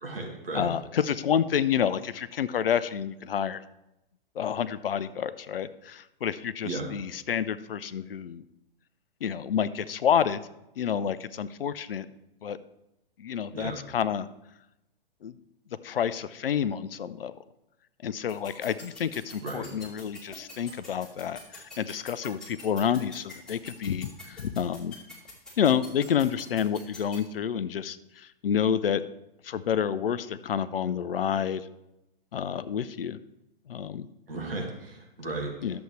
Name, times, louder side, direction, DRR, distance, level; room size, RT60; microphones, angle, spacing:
voice 1, 0.0-0.7 6.6-6.9 13.5-13.8 19.4-19.7 34.3-35.5, right 2 dB, 75° right, 1 dB, 2.0 m, -35 dB
voice 2, 0.5-3.6 4.3-8.4 9.2-10.4 10.8-12.1 12.4-12.6 13.2-14.3 15.2-15.3 15.8-17.3 18.0-25.0 25.6-29.0 29.4-31.7 32.3-33.2 33.7-34.1 35.6-35.8, left 8 dB, 75° left, 14 dB, 0.5 m, -29 dB
sound 1, 18.3-27.2, left 3 dB, ahead, 2.7 m, -44 dB
11.5 x 7.0 x 3.2 m, 0.90 s
figure-of-eight pair, 110°, 29 cm